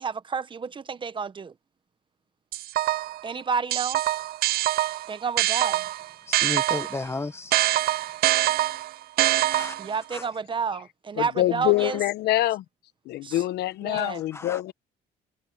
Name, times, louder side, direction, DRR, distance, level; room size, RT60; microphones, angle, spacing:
voice 1, 0.0-1.5 3.2-4.0 5.1-5.8 9.8-12.0 13.2-13.4 13.8-14.2, right 5 dB, 30° right, 1.1 m, -30 dB
sound 1, 2.5-3.2 3.7-7.0 7.5-10.0, right 16 dB, 65° right, 0.4 m, -24 dB
voice 2, 6.2-7.6 9.3-10.3 11.8-12.0 13.3-13.4 14.0-14.7, left 3 dB, 15° left, 1.1 m, -35 dB
voice 3, 11.2-12.6 13.1-14.7, left 15 dB, 75° left, 1.0 m, -25 dB
cardioid pair, 110°, 17 cm